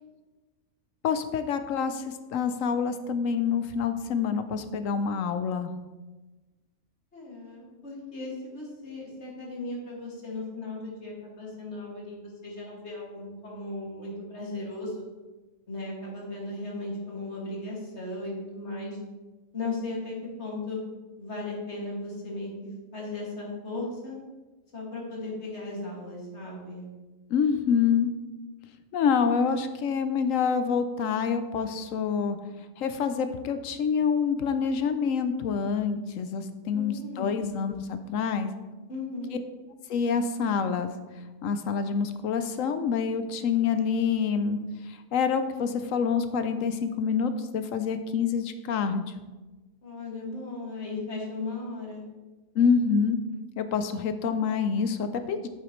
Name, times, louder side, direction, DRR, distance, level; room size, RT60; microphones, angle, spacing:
voice 1, 1.0-5.7 27.3-28.1 28.9-32.4 32.8-38.5 39.9-40.9 41.4-44.6 44.9-49.0 52.6-53.2 53.6-55.5, left 6 dB, 70° left, 9 dB, 1.0 m, -27 dB
voice 2, 7.1-15.1 15.7-19.0 19.5-20.8 21.2-22.5 22.9-24.1 24.7-26.8 36.7-37.5 38.9-39.4 49.8-52.0, left 2 dB, 50° left, -4 dB, 2.5 m, -36 dB
9.0 x 8.0 x 3.1 m, 1.2 s
omnidirectional pair, 1.5 m